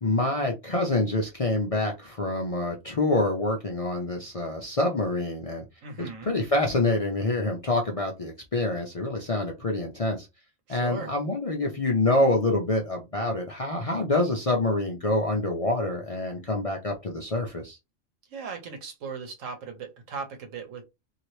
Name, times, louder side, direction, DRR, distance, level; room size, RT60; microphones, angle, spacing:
voice 1, 0.0-5.6 6.0-10.3 10.7-17.8, left 2 dB, 40° left, 0.5 m, -26 dB
voice 2, 5.8-6.3 10.7-11.1 18.3-20.8, right 5 dB, 80° right, 1.3 m, -38 dB
2.8 x 2.8 x 3.1 m
omnidirectional pair, 1.3 m